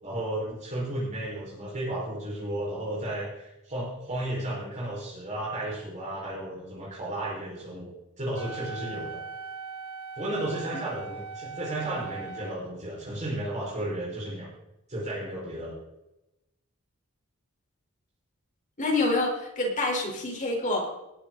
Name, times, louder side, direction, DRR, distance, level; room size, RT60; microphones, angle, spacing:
voice 1, 0.0-9.2 10.2-14.5 14.9-15.8, right 1 dB, 35° right, -6 dB, 5.2 m, -33 dB
Wind instrument woodwind instrument, 8.3-12.6, right 5 dB, 70° right, 1.4 m, -39 dB
voice 2, 18.8-20.9, left 2 dB, 35° left, 0 dB, 4.4 m, -27 dB
19.5 x 10.5 x 4.1 m, 0.92 s
head